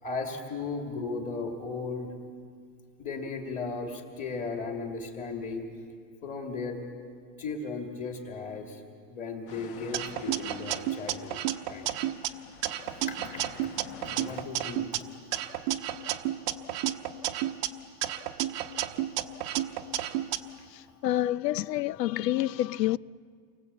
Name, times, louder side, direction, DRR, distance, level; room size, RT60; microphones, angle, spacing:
voice 1, 0.0-2.1 3.0-5.6 6.2-6.8 7.4-8.8 9.1-11.4 11.7-11.9 13.1-13.4 14.1-14.9, left 4 dB, 15° left, 2.7 m, -36 dB
sound 1, 9.5-14.4, left 7 dB, 35° left, 1.3 m, -48 dB
sound 2, 9.9-12.3 12.6-15.0 15.3-17.7 18.0-20.4, right 13 dB, 30° right, 1.0 m, -31 dB
voice 2, 21.0-23.0, left 14 dB, 85° left, 0.7 m, -27 dB
29.5 x 24.0 x 8.3 m
supercardioid pair, 180°, 48 cm